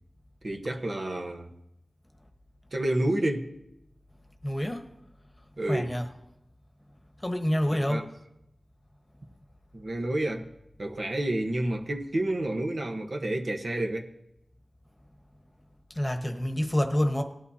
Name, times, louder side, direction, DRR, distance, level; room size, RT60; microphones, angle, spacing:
voice 1, 0.4-1.5 2.7-3.5 5.6-5.9 7.7-8.0 9.7-10.5 10.8-14.1, right 1 dB, 60° right, 2 dB, 1.1 m, -29 dB
voice 2, 4.4-4.9 5.7-6.1 7.2-8.0 15.9-17.2, equal, 20° left, 4 dB, 1.1 m, -27 dB
18.5 x 11.0 x 2.8 m, 0.85 s
wide cardioid pair, 70°, 0 cm